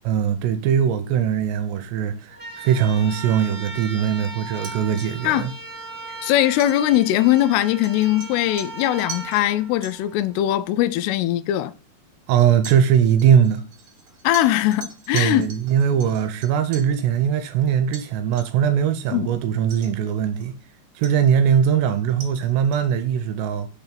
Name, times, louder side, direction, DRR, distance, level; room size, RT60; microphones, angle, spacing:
voice 1, 0.1-5.5 12.3-13.6 15.1-20.5 21.0-23.7, right 8 dB, 85° right, 2.6 m, -20 dB
sound 1, 2.3-10.4, right 3 dB, 10° right, 0.4 m, -37 dB
sound 2, 4.5-9.5 9.8-9.9 11.0-11.1 12.4-17.0 17.9-18.1 18.4-18.7 19.1-19.2 19.7-20.6 21.0-23.0, right 5 dB, 45° right, 2.6 m, -42 dB
voice 2, 6.2-11.7 14.2-15.5 19.1-19.3, left 13 dB, 80° left, 2.5 m, -20 dB
6.8 x 3.4 x 5.7 m
omnidirectional pair, 5.0 m